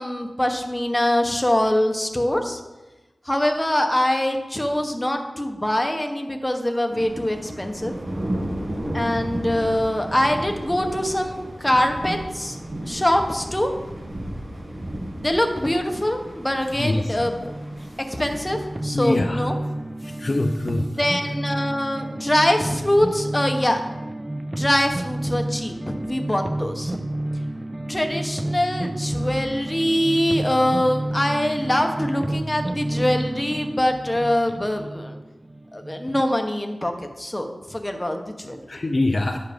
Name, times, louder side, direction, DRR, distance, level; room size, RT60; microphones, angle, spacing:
voice 1, 0.0-2.6 3.2-7.9 8.9-12.6 12.9-13.7 15.2-17.5 18.1-19.5 21.0-23.8 24.6-27.0 27.9-35.2 35.7-36.9 37.2-38.6, left 1 dB, 15° left, 4 dB, 1.1 m, -23 dB
sound 1, 6.9-18.8, right 1 dB, 45° right, 1.6 m, -34 dB
voice 2, 16.8-17.2 17.8-17.9 18.9-19.5 20.0-21.0 38.7-39.4, left 2 dB, 45° left, 4 dB, 0.6 m, -24 dB
sound 2, 17.2-36.3, right 1 dB, 20° right, 0.3 m, -30 dB
9.9 x 6.5 x 5.2 m, 1.1 s
wide cardioid pair, 80°, 0 cm